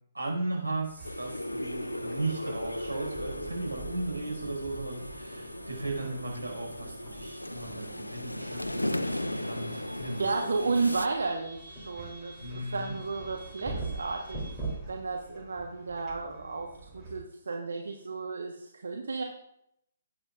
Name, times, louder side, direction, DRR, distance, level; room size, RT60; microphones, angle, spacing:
voice 1, 0.1-10.3 12.4-12.9, right 2 dB, 85° right, -2 dB, 5.1 m, -36 dB
sound 1, 0.8-17.2, right 2 dB, ahead, 3.3 m, -44 dB
sound 2, 1.0-11.1, left 1 dB, 85° left, 0.7 m, -37 dB
voice 2, 10.2-14.4 14.9-16.7 16.9-19.2, right 4 dB, 65° right, 2 dB, 1.3 m, -33 dB
18.5 x 8.8 x 2.5 m, 0.76 s
figure-of-eight pair, 130°, 0 cm